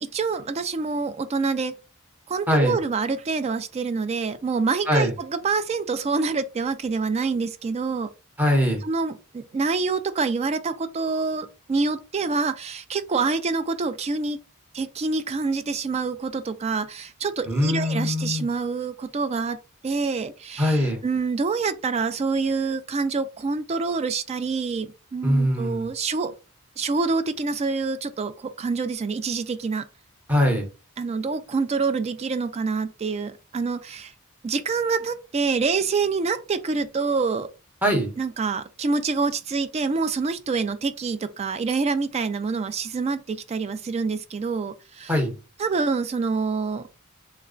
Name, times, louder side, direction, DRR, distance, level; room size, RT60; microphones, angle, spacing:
voice 1, 0.0-1.7 2.3-8.1 8.8-14.4 14.7-19.6 19.8-26.3 26.8-29.9 31.0-34.1 34.4-37.5 38.2-45.2 45.6-46.9, right 4 dB, 30° right, 0.3 m, -26 dB
voice 2, 8.4-8.8 17.5-18.5 20.6-21.0 25.2-25.9 30.3-30.7 37.8-38.1 45.1-45.3, equal, 10° right, 0.9 m, -22 dB
3.2 x 2.2 x 3.7 m
head